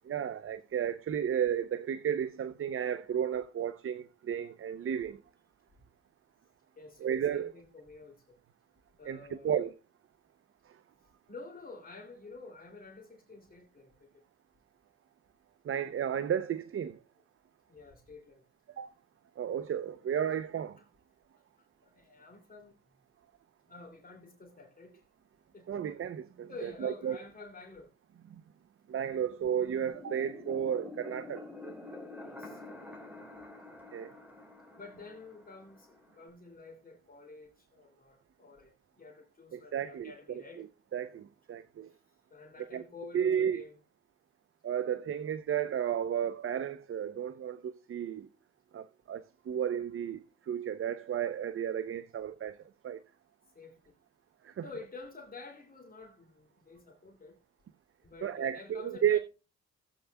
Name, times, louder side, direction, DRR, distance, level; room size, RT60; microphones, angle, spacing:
voice 1, 0.0-5.2 7.0-7.5 9.0-9.7 10.7-10.8 15.6-17.0 18.8-18.9 19.4-20.8 25.7-27.2 28.9-31.5 33.9-34.2 39.5-41.9 42.7-42.8 43.1-43.6 44.6-48.3 48.7-52.6 52.8-53.0 54.4-54.6 58.2-59.2, right 9 dB, 45° right, 0.7 m, -33 dB
voice 2, 6.8-8.4 9.0-9.6 11.3-14.2 17.7-18.5 20.8-20.9 21.6-22.8 23.7-25.0 25.5-25.8 26.5-27.9 32.2-33.1 34.8-40.6 42.3-43.7 53.5-54.0 54.6-57.4 58.0-59.2, left 3 dB, 30° left, 2.8 m, -50 dB
sound 1, 29.7-36.3, left 2 dB, 5° right, 3.2 m, -48 dB
16.5 x 8.5 x 2.3 m
cardioid pair, 90°, 30 cm